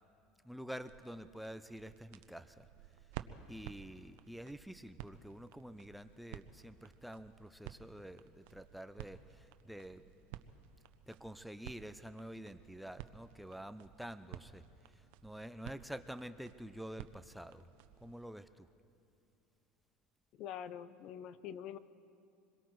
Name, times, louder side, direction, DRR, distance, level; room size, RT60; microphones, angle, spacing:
voice 1, 0.4-2.7 3.5-10.4 11.1-14.6 14.9-17.6 18.0-18.7, equal, ahead, 11 dB, 0.5 m, -48 dB
sound 1, 0.7-18.3, right 12 dB, 75° right, 0.8 m, -53 dB
voice 2, 20.4-21.8, left 9 dB, 55° left, 15 dB, 0.7 m, -45 dB
26.5 x 22.0 x 4.7 m, 2.6 s
supercardioid pair, 130°, 0 cm